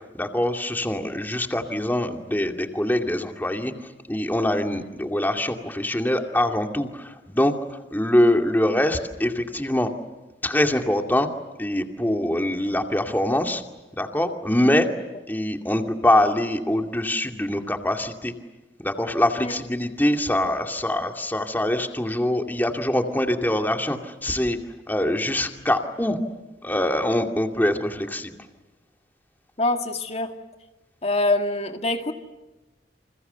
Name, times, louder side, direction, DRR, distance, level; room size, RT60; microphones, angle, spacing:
voice 1, 0.2-3.7 4.1-7.5 7.9-9.9 10.4-11.3 11.6-13.6 14.0-14.9 15.3-18.3 18.8-24.6 24.9-26.2 26.6-28.3, left 1 dB, 10° left, 4 dB, 2.4 m, -23 dB
voice 2, 29.6-30.3 31.0-32.1, left 2 dB, 35° left, 5 dB, 2.3 m, -24 dB
29.5 x 28.0 x 6.9 m, 1.1 s
head